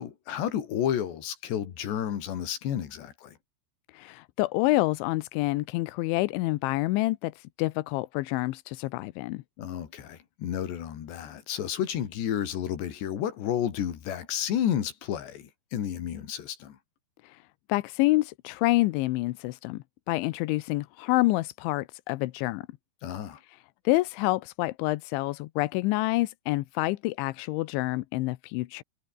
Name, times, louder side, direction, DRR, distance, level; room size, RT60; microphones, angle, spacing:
voice 1, 0.0-3.4 9.6-16.8 23.0-23.4, left 10 dB, 65° left, 4.8 m, -31 dB
voice 2, 3.9-9.4 17.2-17.4 17.7-22.6 23.9-28.8, left 20 dB, 85° left, 3.1 m, -27 dB
omnidirectional pair, 5.4 m